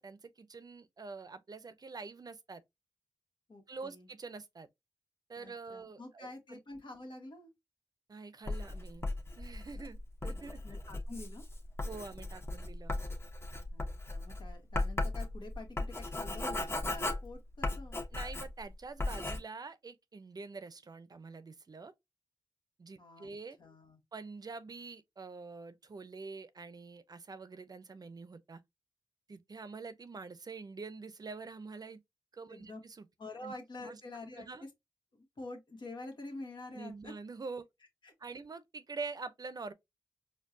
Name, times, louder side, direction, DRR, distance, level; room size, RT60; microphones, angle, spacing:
voice 1, 0.0-2.6 3.7-4.7 5.3-6.6 8.1-9.1 9.4-10.8 11.8-12.9 18.1-21.9 22.8-23.6 24.1-28.6 29.3-32.0 32.3-33.1 33.4-33.5 33.8-34.0 34.4-34.6 36.7-37.7 38.2-39.7, right 4 dB, 50° right, 0.6 m, -46 dB
voice 2, 3.5-4.1 5.4-7.5 10.6-11.4 13.7-18.0 23.0-24.0 32.5-32.8 33.2-34.7 35.1-37.1 38.0-38.1, left 2 dB, 65° left, 1.4 m, -47 dB
Writing, 8.5-18.7 19.0-19.4, left 2 dB, 30° left, 1.0 m, -37 dB
4.4 x 2.3 x 2.6 m
cardioid pair, 50°, 9 cm